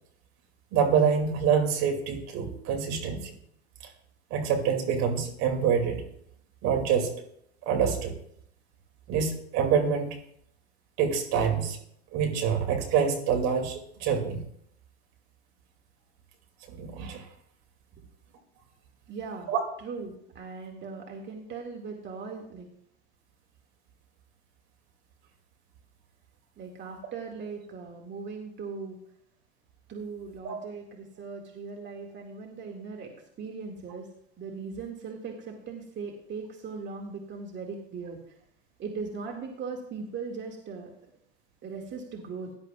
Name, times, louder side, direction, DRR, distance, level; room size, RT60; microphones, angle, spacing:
voice 1, 0.7-3.3 4.3-6.0 6.6-7.1 7.7-8.1 9.1-10.2 11.0-11.8 12.1-14.4 16.7-17.3 19.5-19.6 30.4-30.6, right 7 dB, 50° right, 3 dB, 2.6 m, -26 dB
voice 2, 19.1-19.5 19.8-22.7 26.6-29.0 29.9-34.1 34.4-38.4 38.8-40.9 41.6-42.5, right 5 dB, 35° right, 1 dB, 2.2 m, -39 dB
16.5 x 11.0 x 2.4 m, 0.70 s
hypercardioid pair, 90°, 33 cm